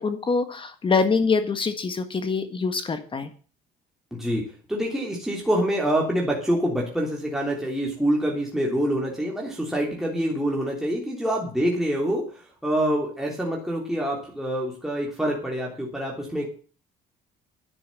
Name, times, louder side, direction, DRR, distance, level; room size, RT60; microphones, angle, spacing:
voice 1, 0.0-3.3, left 4 dB, 30° left, 10 dB, 1.6 m, -24 dB
voice 2, 4.1-16.5, equal, ahead, -2 dB, 3.2 m, -26 dB
10.5 x 8.8 x 7.7 m, 0.39 s
cardioid pair, 110°, 17 cm